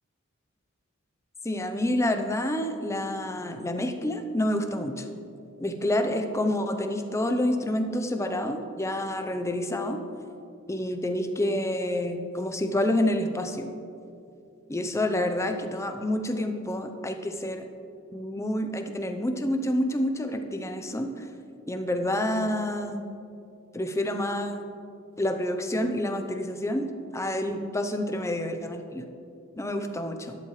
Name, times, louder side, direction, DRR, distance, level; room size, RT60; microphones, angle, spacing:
voice 1, 1.4-5.1 5.6-10.0 10.7-13.7 14.7-17.7 18.1-21.3 21.7-23.0 23.7-24.6 25.2-28.8 29.6-30.4, left 1 dB, 15° left, 6 dB, 0.7 m, -28 dB
12.5 x 11.5 x 3.2 m, 2.5 s
head